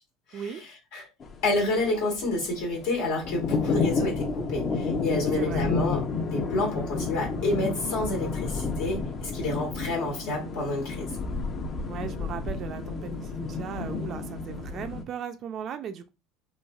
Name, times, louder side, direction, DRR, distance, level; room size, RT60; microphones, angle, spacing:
voice 1, 0.3-1.1 1.4-11.1, left 2 dB, 75° left, 1.4 m, -29 dB
sound 1, 1.2-15.0, left 4 dB, 40° left, 0.5 m, -31 dB
voice 2, 11.9-16.1, right 8 dB, 45° right, 0.3 m, -37 dB
3.1 x 2.4 x 2.3 m
hypercardioid pair, 90°, 0 cm